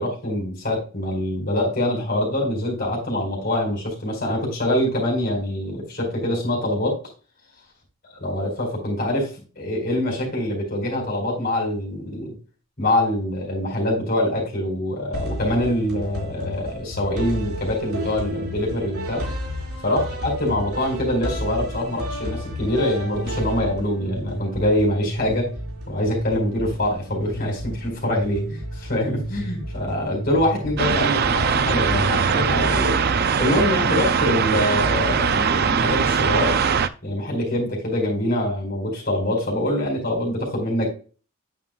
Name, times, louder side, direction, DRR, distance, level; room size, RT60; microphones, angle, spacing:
voice 1, 0.0-7.0 8.2-12.3 12.8-19.2 19.8-25.5 25.9-33.0 33.4-36.6 37.0-40.9, left 1 dB, 40° left, 0 dB, 4.5 m, -24 dB
sound 1, 15.1-32.9, equal, 80° right, 3.9 m, -32 dB
sound 2, 30.8-36.9, right 6 dB, 45° right, 0.4 m, -21 dB
9.3 x 7.4 x 2.3 m, 0.36 s
head